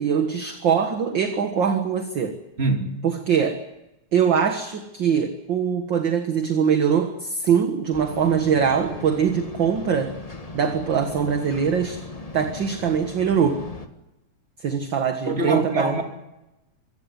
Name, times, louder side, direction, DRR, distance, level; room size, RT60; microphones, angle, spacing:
voice 1, 0.0-2.3 3.0-3.6 4.1-10.1 10.5-12.0 12.3-13.6 14.6-16.0, right 7 dB, 45° right, 7 dB, 1.9 m, -22 dB
voice 2, 2.6-2.9 15.3-16.0, right 2 dB, 20° right, 4 dB, 3.0 m, -23 dB
sound 1, 7.9-13.9, left 3 dB, 20° left, 1.1 m, -38 dB
25.0 x 16.0 x 9.9 m, 0.95 s
omnidirectional pair, 3.4 m